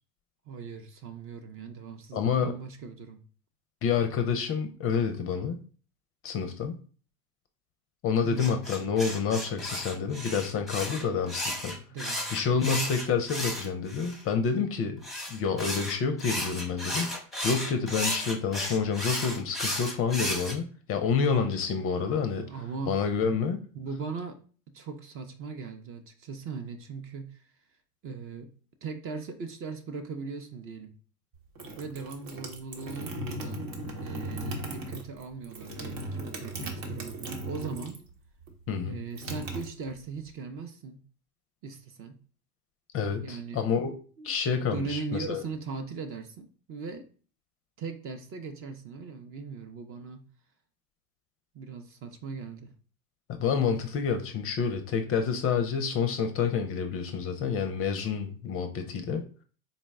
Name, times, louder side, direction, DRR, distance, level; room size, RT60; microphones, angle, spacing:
voice 1, 0.5-3.2 8.2-8.5 11.9-12.5 22.4-23.0 23.7-24.4 24.7-27.5 28.0-28.5 28.8-30.9 31.8-33.6 34.0-38.0 38.9-41.0 41.6-42.2 43.2-43.7 44.2-44.3 44.7-47.1 47.8-50.2 51.5-52.7, right 5 dB, 30° right, 7 dB, 0.5 m, -39 dB
voice 2, 2.1-2.5 3.8-5.6 6.2-6.8 8.0-11.8 12.3-15.0 15.3-17.1 17.4-22.5 22.9-23.6 38.7-39.0 42.9-43.9 44.2-45.4 53.3-59.2, left 6 dB, 35° left, 7 dB, 0.5 m, -28 dB
sound 1, 8.4-14.2 15.0-20.6, left 1 dB, ahead, 0.8 m, -33 dB
sound 2, 31.3-38.1 38.4-40.3, right 1 dB, 65° right, 1.0 m, -37 dB
4.0 x 2.0 x 3.4 m, 0.40 s
hypercardioid pair, 85°, 43 cm